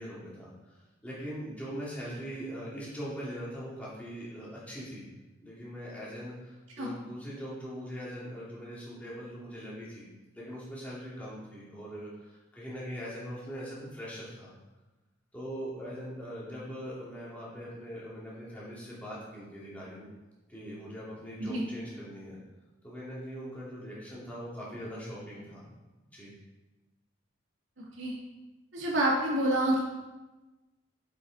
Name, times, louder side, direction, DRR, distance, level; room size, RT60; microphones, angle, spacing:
voice 1, 0.0-5.0 5.4-10.0 10.3-14.5 15.3-20.1 20.5-22.4 22.8-25.7 26.1-26.3, equal, 10° left, -8 dB, 2.4 m, -41 dB
voice 2, 27.8-28.1 28.7-29.8, right 1 dB, 80° right, -4 dB, 2.4 m, -28 dB
7.6 x 6.1 x 4.0 m, 1.1 s
head